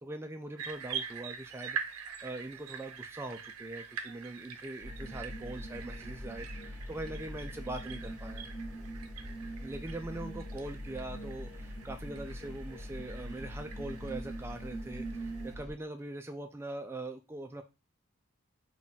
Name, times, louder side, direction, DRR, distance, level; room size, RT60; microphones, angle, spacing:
voice 1, 0.0-8.5 9.6-17.6, right 2 dB, 10° right, 5 dB, 0.3 m, -42 dB
sound 1, 0.6-15.5, right 7 dB, 80° right, 0.5 m, -45 dB
sound 2, 4.8-15.7, equal, 10° left, 1.5 m, -42 dB
3.6 x 2.3 x 3.9 m, 0.27 s
head